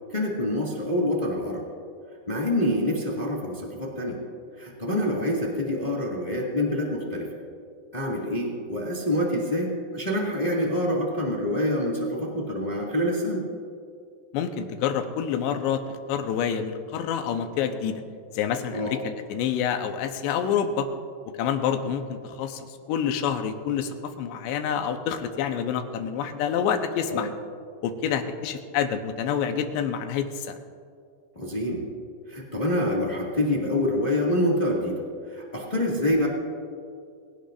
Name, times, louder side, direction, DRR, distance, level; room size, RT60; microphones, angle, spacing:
voice 1, 0.1-1.7 2.3-4.2 4.6-7.3 7.9-13.5 18.7-19.0 27.1-27.3 31.3-31.8 32.3-35.0 35.3-36.3, left 1 dB, 45° left, -3 dB, 0.5 m, -26 dB
voice 2, 14.3-18.0 18.3-20.9 21.4-27.3 27.8-30.6, left 8 dB, 85° left, 6 dB, 3.1 m, -27 dB
22.0 x 17.0 x 2.6 m, 2.3 s
omnidirectional pair, 5.0 m